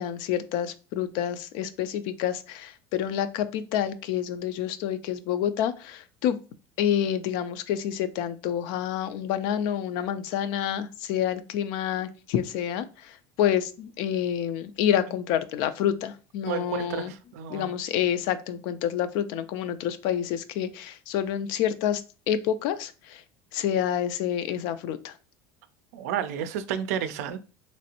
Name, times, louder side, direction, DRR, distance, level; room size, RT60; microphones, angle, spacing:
voice 1, 0.0-6.4 6.8-17.1 17.5-22.0 22.3-23.2 23.5-25.2, left 10 dB, 65° left, 0.4 m, -28 dB
voice 2, 16.5-17.7 25.9-27.4, right 8 dB, 85° right, 0.4 m, -31 dB
3.1 x 2.5 x 2.8 m
supercardioid pair, 120°, 8 cm